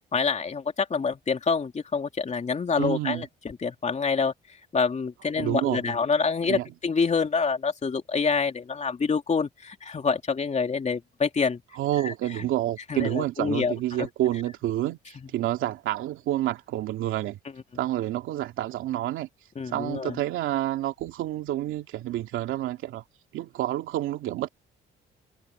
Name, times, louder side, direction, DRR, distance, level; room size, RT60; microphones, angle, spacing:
voice 1, 0.1-4.3 4.7-11.6 12.0-12.1 12.9-14.1 19.6-20.1, left 5 dB, 35° left, 2.9 m, -27 dB
voice 2, 2.8-3.2 5.4-5.9 6.5-6.7 11.7-17.4 17.7-19.3 19.6-23.0 23.3-24.5, right 14 dB, 90° right, 2.4 m, -29 dB
cardioid pair, 90°, 20 cm